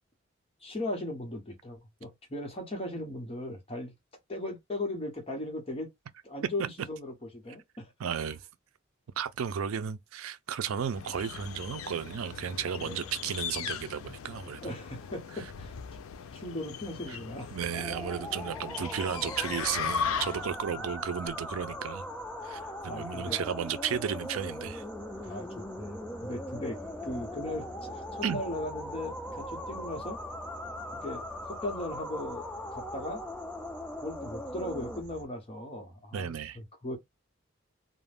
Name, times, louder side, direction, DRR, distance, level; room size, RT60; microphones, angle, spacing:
voice 1, 0.6-3.9 4.3-5.9 6.2-7.9 12.8-13.0 14.6-15.8 16.3-17.5 20.7-20.9 22.9-23.4 25.2-30.2 30.9-32.5 32.7-33.2 34.0-37.0, left 1 dB, 25° left, 0.8 m, -38 dB
voice 2, 8.0-8.4 9.2-14.8 15.3-15.5 17.1-17.2 17.5-22.0 22.4-24.8 28.2-28.4 36.1-36.6, right 8 dB, 80° right, 0.4 m, -34 dB
sound 1, 10.8-20.6, left 7 dB, 75° left, 0.4 m, -38 dB
sound 2, 17.7-35.0, left 1 dB, 5° left, 0.3 m, -40 dB
sound 3, 19.7-35.2, left 1 dB, 35° right, 1.0 m, -51 dB
2.4 x 2.1 x 3.3 m
head